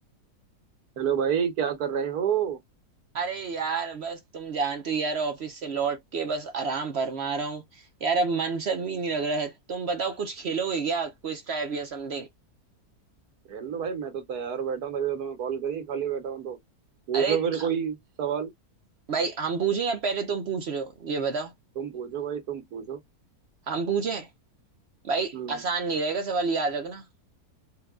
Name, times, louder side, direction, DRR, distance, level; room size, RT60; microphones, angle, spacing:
voice 1, 1.0-2.6 13.5-16.6 17.1-18.5 21.8-23.0 25.3-25.6, right 8 dB, 75° right, 1.6 m, -29 dB
voice 2, 3.1-12.3 17.1-17.7 19.1-21.5 23.7-24.3 25.0-27.0, right 4 dB, 55° right, 0.7 m, -29 dB
4.5 x 2.3 x 3.5 m
omnidirectional pair, 1.7 m